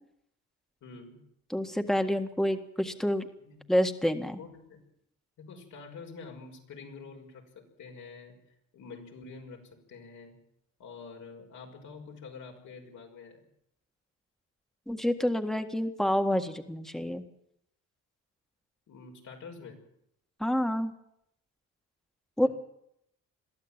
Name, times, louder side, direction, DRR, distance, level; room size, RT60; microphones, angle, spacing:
voice 1, 0.8-1.2 3.4-3.6 4.4-4.8 5.4-8.4 8.7-10.4 10.8-13.4 18.9-19.8, left 4 dB, 75° left, 1 dB, 6.0 m, -47 dB
voice 2, 1.5-3.3 3.7-4.4 14.9-17.2 20.4-20.9 22.4-22.5, equal, ahead, 7 dB, 1.8 m, -28 dB
22.5 x 14.5 x 9.0 m, 0.76 s
cardioid pair, 90°, 30 cm